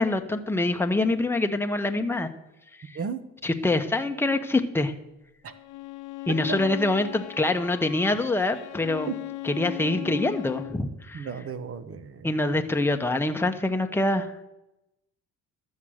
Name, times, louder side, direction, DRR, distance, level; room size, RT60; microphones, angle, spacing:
voice 1, 0.0-2.3 2.9-3.0 3.4-4.9 6.3-9.1 9.4-11.3 12.2-14.3, left 2 dB, 10° left, 6 dB, 1.0 m, -25 dB
Bowed string instrument, 5.5-10.9, left 19 dB, 85° left, 0.8 m, -38 dB
voice 2, 11.1-12.3, right 6 dB, 50° right, 11 dB, 1.2 m, -34 dB
12.5 x 7.4 x 6.4 m, 0.93 s
cardioid pair, 90°, 30 cm